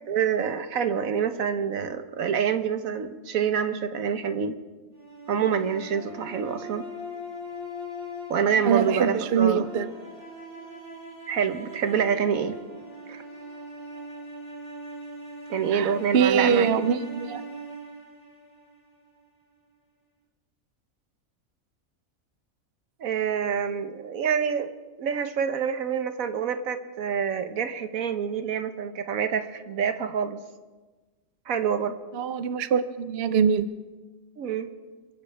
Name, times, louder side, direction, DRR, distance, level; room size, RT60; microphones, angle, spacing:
voice 1, 0.1-4.5 5.3-6.8 8.3-9.7 11.3-12.6 13.1-13.2 15.5-16.9 23.0-24.7 25.0-30.4 31.5-31.9 34.4-34.7, right 7 dB, 80° right, 9 dB, 1.4 m, -27 dB
sound 1, 4.9-19.1, equal, 25° left, 3.3 m, -41 dB
voice 2, 8.7-9.9 15.7-17.4 32.1-33.6, right 7 dB, 55° right, 12 dB, 0.9 m, -23 dB
27.0 x 15.5 x 3.5 m, 1.3 s
omnidirectional pair, 1.4 m